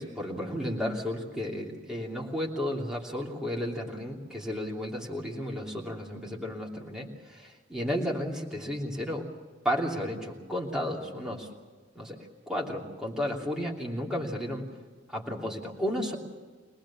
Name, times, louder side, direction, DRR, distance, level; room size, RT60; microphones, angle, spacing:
voice 1, 0.0-9.3 9.6-11.5 11.9-12.2 12.5-14.7 15.1-16.2, equal, 5° right, -3 dB, 3.0 m, -33 dB
24.5 x 19.0 x 7.2 m, 1.4 s
head